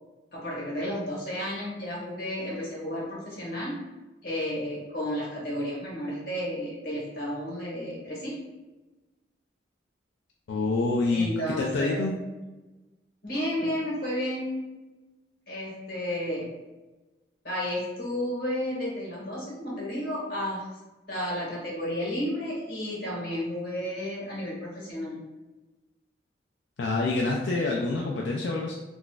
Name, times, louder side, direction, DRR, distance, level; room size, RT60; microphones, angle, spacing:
voice 1, 0.3-3.8 4.2-8.4 11.1-12.0 13.2-14.5 15.5-16.5 17.4-20.6 21.1-25.2, equal, 50° left, -6 dB, 1.3 m, -32 dB
voice 2, 10.5-12.1 26.8-28.7, left 3 dB, 80° left, -1 dB, 0.4 m, -27 dB
3.9 x 2.5 x 2.3 m, 1.1 s
head